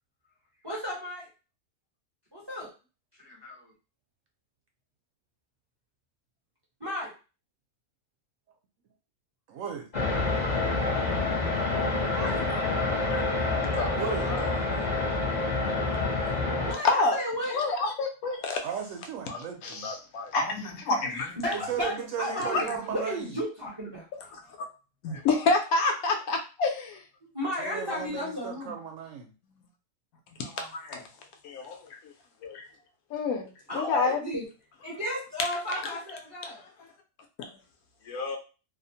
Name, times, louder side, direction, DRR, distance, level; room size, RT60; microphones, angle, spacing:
voice 1, 0.6-1.3 2.3-2.7 3.2-3.7 6.8-7.1 12.1-12.5 16.6-17.6 21.4-24.1 27.3-28.8 33.7-34.5 34.8-36.6, equal, 25° right, -5 dB, 0.5 m, -34 dB
voice 2, 9.5-9.9 13.9-14.4 18.6-19.9 21.5-23.3 27.6-29.3, right 7 dB, 70° right, 2 dB, 0.9 m, -35 dB
sound 1, 9.9-16.7, left 3 dB, 40° left, 0.6 m, -27 dB
voice 3, 14.3-15.0 16.0-16.3 16.8-17.2 17.5-18.6 19.3-21.4 22.5-22.6 25.0-27.0 30.4-31.0 31.4-32.0 32.4-32.7 33.1-34.2 37.4-37.5 38.1-38.4, left 3 dB, 75° left, 3 dB, 1.0 m, -29 dB
2.7 x 2.1 x 2.7 m, 0.32 s
omnidirectional pair, 1.5 m